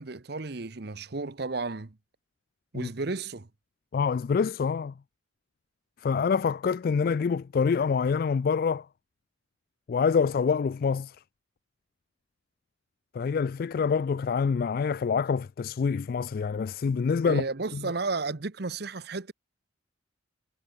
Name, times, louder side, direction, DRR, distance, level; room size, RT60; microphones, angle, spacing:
voice 1, 0.0-2.0 2.7-3.5 17.2-19.3, right 3 dB, 55° right, 1.0 m, -33 dB
voice 2, 3.9-4.9 6.0-8.9 9.9-11.2 13.1-17.4 17.7-17.8, left 5 dB, 50° left, 0.3 m, -26 dB
head